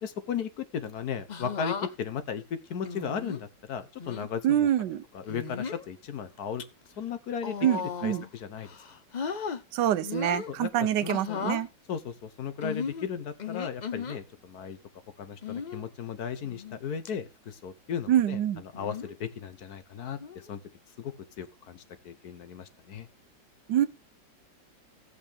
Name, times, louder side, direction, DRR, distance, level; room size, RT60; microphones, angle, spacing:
voice 1, 0.0-4.7 5.1-6.6 7.0-8.7 10.5-11.4 11.9-14.8 15.2-20.2 20.5-20.6 21.0-23.1, left 7 dB, 65° left, 1.4 m, -36 dB
sound 1, 1.3-1.9 2.8-3.4 4.0-4.3 5.3-5.8 6.4-6.6 7.4-8.3 8.6-9.6 10.0-10.5 11.1-11.6 12.6-14.2 15.4-15.8 16.4-16.8 17.0-17.1 18.7-19.1 20.2-20.5, left 6 dB, 90° left, 0.3 m, -36 dB
voice 2, 4.4-5.0 7.6-8.2 9.7-11.7 18.1-18.6 23.7-23.9, right 11 dB, 75° right, 1.4 m, -25 dB
15.0 x 8.2 x 3.4 m
omnidirectional pair, 1.9 m